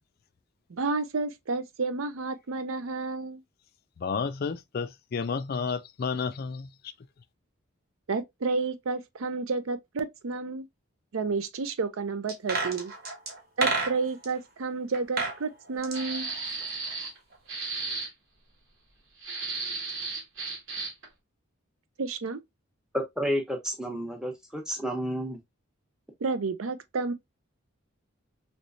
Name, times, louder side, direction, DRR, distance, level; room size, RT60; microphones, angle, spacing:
voice 1, 0.7-3.4 8.1-10.7 11.1-12.9 13.6-16.3 22.0-22.4 26.2-27.1, right 4 dB, 85° right, 0.5 m, -31 dB
voice 2, 4.0-6.7, left 5 dB, 50° left, 0.3 m, -31 dB
sound 1, 12.3-14.3 14.9-15.4 15.7-17.0 17.3-17.4, right 3 dB, 45° right, 1.1 m, -31 dB
sound 2, 15.9-17.2 17.5-18.1 19.2-21.1, right 3 dB, 70° right, 1.3 m, -34 dB
voice 3, 23.2-25.4, equal, 5° right, 0.7 m, -31 dB
3.2 x 3.1 x 2.6 m
head